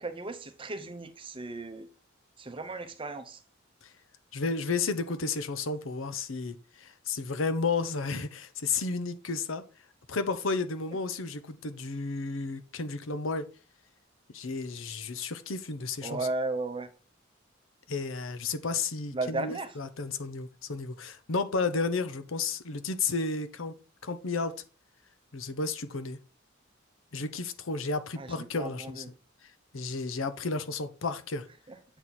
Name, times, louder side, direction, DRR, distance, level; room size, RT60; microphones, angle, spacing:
voice 1, 0.0-1.9 2.4-3.4 16.0-16.9 19.1-19.8 28.2-29.1 31.7-31.8, right 2 dB, 25° right, 0.7 m, -35 dB
voice 2, 4.3-9.6 10.1-13.5 14.3-16.2 17.9-23.7 24.0-24.6 25.3-26.2 27.1-29.0 29.7-31.5, left 4 dB, 75° left, 0.7 m, -32 dB
8.0 x 4.1 x 4.3 m
head